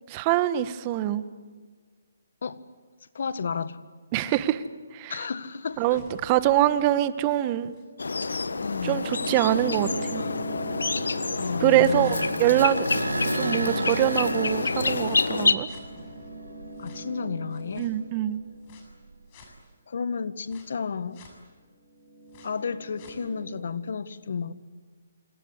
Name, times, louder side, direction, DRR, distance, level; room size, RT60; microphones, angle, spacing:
voice 1, 0.1-1.3 4.1-4.6 4.9-5.2 5.8-7.7 8.8-10.3 11.6-12.9 13.3-15.7 17.8-18.4, right 13 dB, 30° right, 13 dB, 1.4 m, -24 dB
voice 2, 3.1-3.8 5.1-6.0 8.6-9.0 11.4-12.3 16.8-17.9 19.9-21.2 22.4-24.5, left 5 dB, 65° left, 13 dB, 1.7 m, -32 dB
sound 1, 5.8-12.7 13.2-18.9 19.3-19.5 20.5-20.6 21.2-21.3 21.8-23.6, equal, 35° left, 7.2 m, -42 dB
sound 2, 8.0-15.5, left 4 dB, 80° left, 1.5 m, -28 dB
sound 3, 8.2-17.2 17.7-19.6, right 3 dB, 85° right, 1.6 m, -35 dB
27.0 x 27.0 x 8.2 m, 1.5 s
hypercardioid pair, 145°, 0 cm